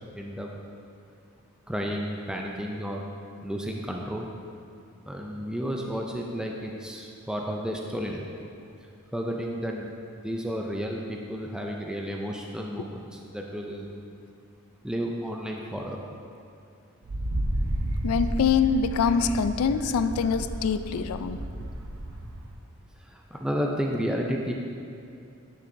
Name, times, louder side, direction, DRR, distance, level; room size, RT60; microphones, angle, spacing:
voice 1, 0.1-0.5 1.7-3.0 3.4-4.3 5.1-8.3 9.1-13.9 14.8-16.0 23.0-24.5, equal, 5° right, 0 dB, 0.3 m, -32 dB
Wind, 17.0-22.5, right 1 dB, 80° right, 0.6 m, -32 dB
voice 2, 18.0-21.4, left 6 dB, 80° left, 11 dB, 0.3 m, -24 dB
9.2 x 6.7 x 2.6 m, 2.5 s
head